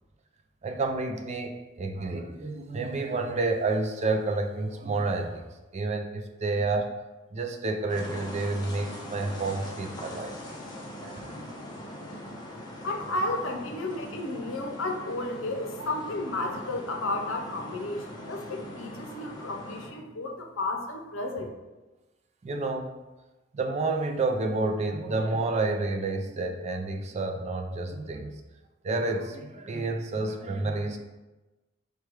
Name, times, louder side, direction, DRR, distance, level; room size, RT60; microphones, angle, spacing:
voice 1, 0.6-5.4 5.7-6.9 7.3-10.4 10.7-11.5 22.4-22.9 23.5-28.3 28.8-31.0, right 3 dB, 35° right, 4 dB, 0.3 m, -30 dB
sound 1, 7.9-19.9, left 1 dB, 20° left, 0.6 m, -41 dB
voice 2, 12.8-21.5, left 2 dB, 75° left, 3 dB, 0.6 m, -32 dB
4.6 x 2.3 x 4.6 m, 1.1 s
head